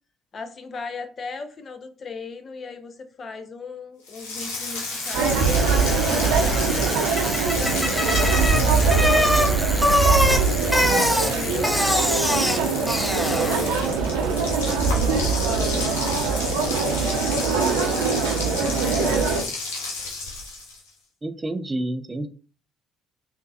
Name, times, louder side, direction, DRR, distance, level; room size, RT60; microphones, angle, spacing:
voice 1, 0.3-5.5 5.8-6.6 7.5-10.4 11.2-14.1 15.0-19.2 21.8-21.9, left 4 dB, 45° left, 0.6 m, -38 dB
sound 1, 4.1-20.9, left 3 dB, 80° left, 1.0 m, -33 dB
Bicycle, 4.5-13.9, left 1 dB, 5° left, 0.8 m, -24 dB
sound 2, 5.1-19.4, right 5 dB, 75° right, 0.5 m, -22 dB
voice 2, 8.5-9.0 21.2-22.3, right 1 dB, 20° right, 0.4 m, -30 dB
3.7 x 2.6 x 2.6 m
hypercardioid pair, 55°, 0 cm